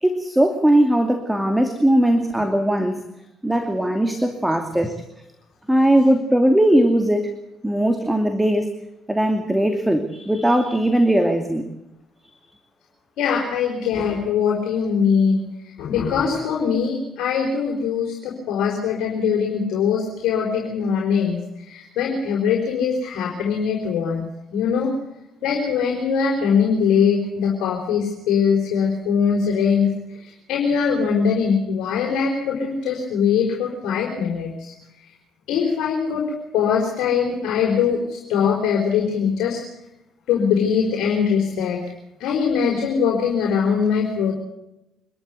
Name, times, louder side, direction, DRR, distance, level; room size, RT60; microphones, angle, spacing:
voice 1, 0.0-3.0 3.4-5.0 5.7-7.3 7.6-8.7 9.1-11.7, right 1 dB, 5° right, 6 dB, 2.6 m, -19 dB
voice 2, 13.2-24.9 25.4-29.9 30.2-34.7 35.5-36.2 36.5-39.6 40.3-41.8 42.2-44.3, left 6 dB, 65° left, -2 dB, 4.6 m, -22 dB
25.5 x 13.5 x 8.0 m, 0.89 s
hypercardioid pair, 50°, 0 cm